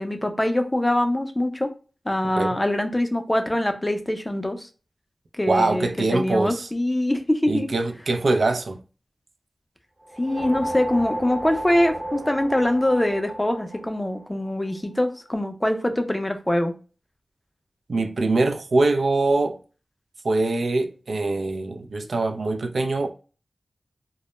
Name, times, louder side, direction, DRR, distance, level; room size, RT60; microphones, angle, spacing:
voice 1, 0.0-1.7 2.1-4.7 5.4-7.7 10.2-16.7, left 1 dB, 20° left, 0.4 m, -23 dB
voice 2, 5.5-6.7 7.5-8.8 17.9-19.6 20.2-23.1, right 2 dB, 75° right, 0.3 m, -23 dB
sound 1, 10.0-14.6, right 1 dB, 40° right, 0.7 m, -33 dB
2.1 x 2.0 x 3.0 m
cardioid pair, 50°, 0 cm